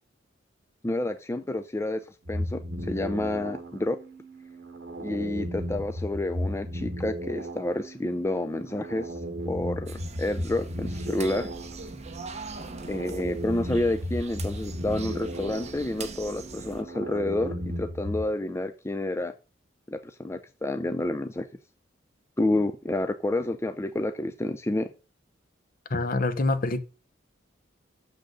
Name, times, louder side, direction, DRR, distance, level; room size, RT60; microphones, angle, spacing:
voice 1, 0.8-2.0 2.3-4.0 5.0-9.2 9.4-11.5 12.9-19.3 19.9-21.5 22.4-24.9, left 1 dB, 15° left, 0.5 m, -29 dB
sound 1, 2.2-18.3, equal, 60° right, 1.7 m, -35 dB
sound 2, 9.9-16.8, right 3 dB, 35° right, 1.1 m, -41 dB
voice 2, 25.9-26.8, left 2 dB, 50° left, 0.9 m, -25 dB
6.7 x 6.3 x 6.6 m
head